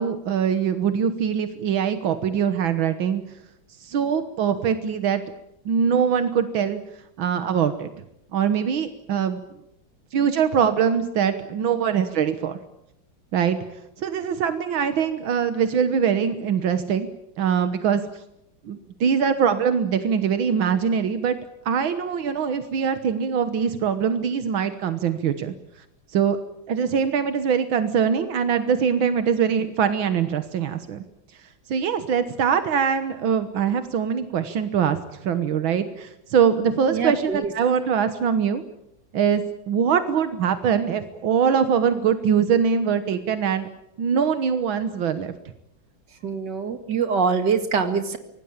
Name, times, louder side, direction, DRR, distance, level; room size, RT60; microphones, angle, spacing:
voice 1, 0.0-3.2 3.8-5.2 5.7-6.8 7.2-7.9 8.3-9.4 10.1-12.6 13.3-13.6 14.0-17.1 17.4-18.0 18.7-21.4 21.7-25.5 26.1-26.4 26.7-31.0 31.7-35.0 35.2-38.6 39.1-43.7 44.0-45.3, right 7 dB, 85° right, 9 dB, 2.0 m, -22 dB
voice 2, 36.9-37.5 46.2-48.2, right 5 dB, 60° right, 8 dB, 2.6 m, -24 dB
25.5 x 18.5 x 8.8 m, 0.85 s
omnidirectional pair, 2.1 m